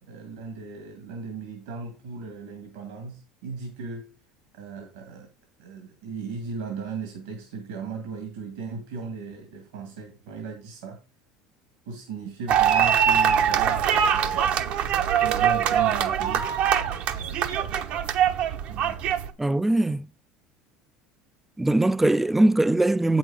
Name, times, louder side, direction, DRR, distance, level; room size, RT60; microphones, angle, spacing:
voice 1, 0.0-4.1 4.5-5.3 5.6-11.0 11.9-16.5 18.7-19.1, right 4 dB, 75° right, 2.0 m, -37 dB
sound 1, 12.5-19.3, right 9 dB, 60° right, 1.0 m, -23 dB
voice 2, 19.4-20.1 21.6-23.2, right 2 dB, 10° right, 0.5 m, -21 dB
8.2 x 6.3 x 4.8 m
hypercardioid pair, 75°, 2 cm